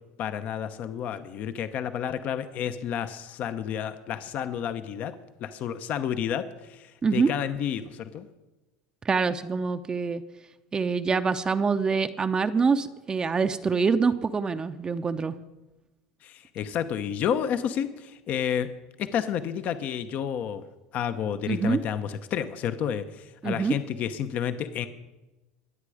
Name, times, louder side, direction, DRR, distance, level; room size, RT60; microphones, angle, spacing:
voice 1, 0.2-5.1 5.4-8.3 16.2-18.7 19.0-20.6 20.9-24.9, left 9 dB, 50° left, 10 dB, 0.9 m, -30 dB
voice 2, 9.0-10.2 10.7-15.3 21.5-21.8 23.4-23.7, right 5 dB, 25° right, 9 dB, 0.8 m, -25 dB
23.5 x 8.4 x 5.0 m, 1.1 s
hypercardioid pair, 95°, 3 cm